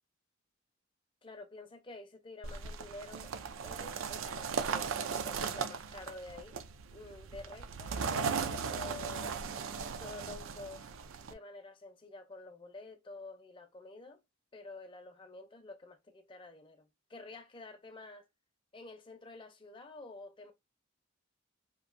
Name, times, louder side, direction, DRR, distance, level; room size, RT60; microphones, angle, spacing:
voice 1, 1.2-3.3 3.6-6.6 6.9-9.3 10.0-10.9 11.3-14.2 14.5-18.2 18.7-20.5, left 2 dB, 25° left, 0.5 m, -49 dB
sound 1, 2.4-11.3, right 6 dB, 85° right, 0.4 m, -37 dB
2.9 x 2.6 x 2.5 m
head